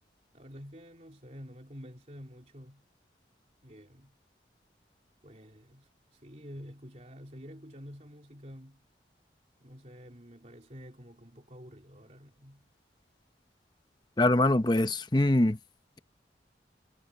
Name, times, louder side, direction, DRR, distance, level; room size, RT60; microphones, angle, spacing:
voice 1, 0.3-2.8 3.6-4.1 5.2-8.8 9.6-12.7, equal, 40° right, 3.4 m, -49 dB
voice 2, 14.2-15.6, left 1 dB, 25° left, 0.8 m, -23 dB
head